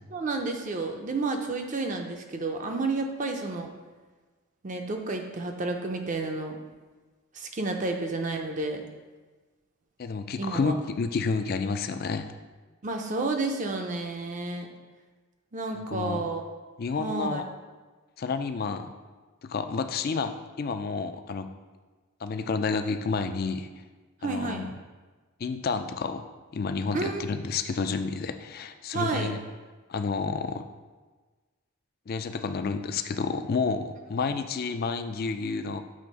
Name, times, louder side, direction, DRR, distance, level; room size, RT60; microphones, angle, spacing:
voice 1, 0.1-3.7 4.6-6.6 7.3-8.8 10.4-10.8 12.8-14.7 15.5-16.4 17.0-17.4 24.2-24.7 26.9-27.4 28.9-29.4, right 3 dB, 35° right, 3 dB, 0.5 m, -31 dB
voice 2, 10.0-12.3 15.9-16.2 16.8-17.4 18.2-18.9 19.4-21.5 22.2-23.7 24.2-24.7 25.4-26.3 26.5-29.4 29.9-30.7 32.1-35.8, left 4 dB, 45° left, 8 dB, 0.3 m, -30 dB
6.4 x 3.3 x 5.2 m, 1.3 s
head